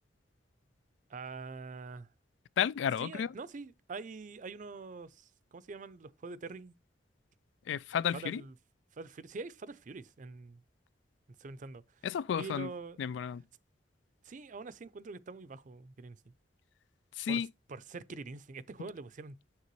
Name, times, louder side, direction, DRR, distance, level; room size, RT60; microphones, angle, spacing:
voice 1, 1.1-2.1 3.0-6.8 8.1-8.6 8.9-10.6 11.4-12.1 12.4-13.0 14.2-16.3 17.3-17.4 17.7-19.4, right 4 dB, 45° right, 0.5 m, -45 dB
voice 2, 2.6-3.3 7.7-8.4 12.0-12.7 13.0-13.4 17.2-17.5, left 8 dB, 80° left, 0.3 m, -32 dB
7.2 x 6.6 x 3.1 m
head